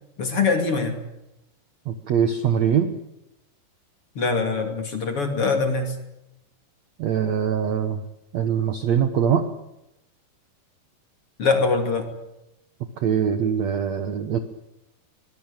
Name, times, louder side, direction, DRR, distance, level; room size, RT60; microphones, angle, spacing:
voice 1, 0.2-1.0 4.1-5.9 11.4-12.1, left 4 dB, 35° left, 5 dB, 2.9 m, -23 dB
voice 2, 1.8-2.9 7.0-8.0 8.3-9.5 13.0-14.4, right 8 dB, 85° right, 9 dB, 1.5 m, -22 dB
23.0 x 20.0 x 9.0 m, 0.88 s
omnidirectional pair, 5.1 m